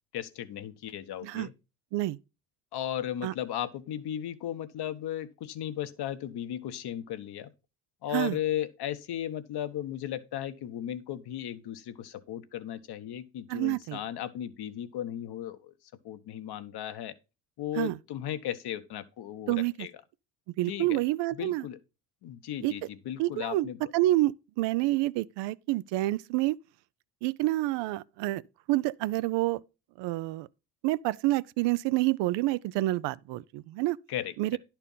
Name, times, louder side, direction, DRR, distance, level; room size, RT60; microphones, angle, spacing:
voice 1, 0.1-1.5 2.7-7.5 8.0-15.7 16.0-17.1 17.6-19.9 20.7-21.0 21.3-21.8 22.2-23.8 34.1-34.6, left 11 dB, 60° left, 1.1 m, -36 dB
voice 2, 13.5-14.0 17.8-18.0 19.5-19.9 20.6-21.6 22.6-22.7 23.2-23.7 23.9-26.6 27.2-28.4 28.7-29.6 30.0-30.5 30.8-34.0 34.4-34.6, right 17 dB, 70° right, 0.5 m, -28 dB
11.0 x 4.5 x 5.4 m
supercardioid pair, 65°, 45 cm